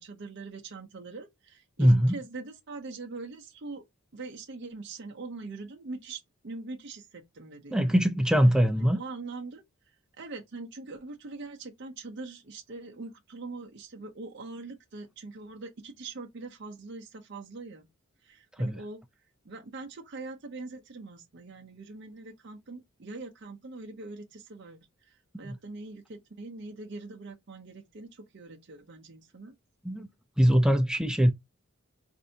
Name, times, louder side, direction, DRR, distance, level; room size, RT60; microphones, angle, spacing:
voice 1, 0.0-3.8 4.1-8.0 8.8-9.6 10.2-17.9 18.2-19.0 19.4-29.5, right 3 dB, 55° right, 0.6 m, -42 dB
voice 2, 1.8-2.1 7.7-9.0 18.6-18.8 25.4-25.5 29.8-30.1 30.4-31.3, equal, 5° right, 0.3 m, -22 dB
4.3 x 2.6 x 2.6 m
head